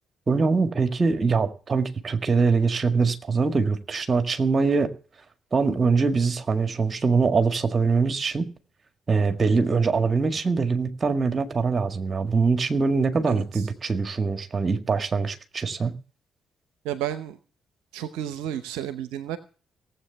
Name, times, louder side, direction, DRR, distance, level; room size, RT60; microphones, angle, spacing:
voice 1, 0.3-4.9 5.5-8.5 9.1-16.0, right 4 dB, 40° right, 7 dB, 1.8 m, -23 dB
voice 2, 13.3-13.7 16.8-17.4 17.9-19.4, right 11 dB, 75° right, 11 dB, 0.8 m, -32 dB
17.5 x 8.0 x 6.9 m, 0.38 s
hypercardioid pair, 40°, 0 cm